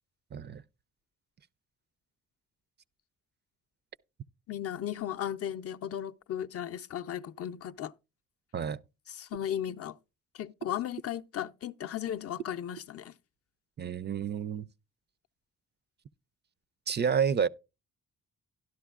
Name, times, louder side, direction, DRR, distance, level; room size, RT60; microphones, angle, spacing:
voice 1, 0.3-0.6 8.5-8.8 13.8-14.7 16.9-17.5, right 7 dB, 35° right, 0.4 m, -29 dB
voice 2, 4.5-7.9 9.1-10.0 10.3-13.1, left 10 dB, 50° left, 0.5 m, -36 dB
12.0 x 11.5 x 2.3 m
cardioid pair, 100°, 30 cm